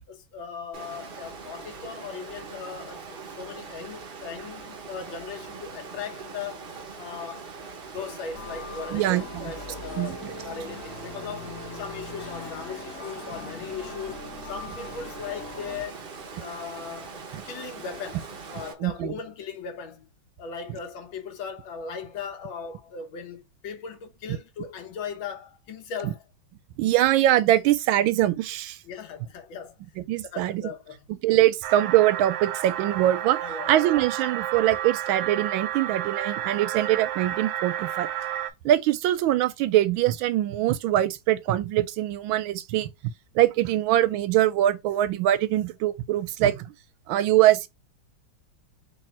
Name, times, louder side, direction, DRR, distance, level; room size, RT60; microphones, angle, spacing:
voice 1, 0.1-7.5 7.9-16.0 16.4-20.1 20.4-26.2 28.8-29.8 30.3-31.1 33.4-33.7, left 6 dB, 75° left, 1.7 m, -38 dB
Water, 0.7-18.7, right 5 dB, 50° right, 0.6 m, -42 dB
sound 1, 8.3-15.9, left 3 dB, 50° left, 1.2 m, -41 dB
voice 2, 8.9-9.5 10.0-10.3 18.8-19.1 26.8-28.8 30.1-30.6 31.2-33.4 33.7-38.1 38.6-42.9 43.3-46.7 47.1-47.7, right 13 dB, 85° right, 1.4 m, -23 dB
sound 2, 31.6-38.5, right 11 dB, 65° right, 1.0 m, -31 dB
3.4 x 3.2 x 4.2 m
omnidirectional pair, 2.2 m